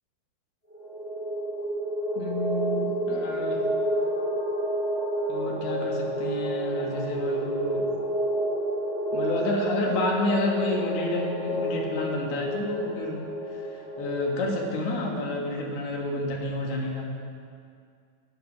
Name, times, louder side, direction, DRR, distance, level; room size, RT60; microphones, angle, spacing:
sound 1, 0.7-15.1, right 1 dB, 35° left, 0.6 m, -30 dB
voice 1, 2.2-3.6 5.3-7.9 9.1-13.2 13.5-17.0, left 2 dB, 75° left, -1 dB, 3.5 m, -30 dB
11.5 x 9.6 x 6.1 m, 2.3 s
omnidirectional pair, 4.6 m